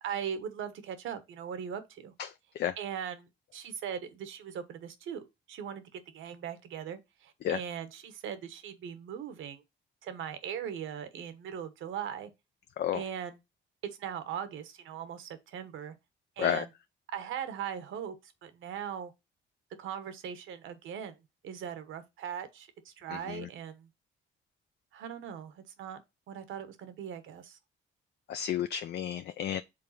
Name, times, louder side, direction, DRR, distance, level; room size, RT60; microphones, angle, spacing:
voice 1, 0.0-2.1 2.8-9.6 10.0-12.3 12.9-13.4 14.0-15.9 16.4-16.7 17.1-19.1 19.8-21.2 21.4-23.9 24.9-26.0 26.3-27.6, right 8 dB, 80° right, 1.1 m, -40 dB
voice 2, 2.2-2.7 7.4-7.6 12.8-13.0 16.4-16.6 23.1-23.5 28.3-29.6, left 10 dB, 55° left, 0.4 m, -32 dB
5.3 x 3.8 x 5.6 m
cardioid pair, 90°, 20 cm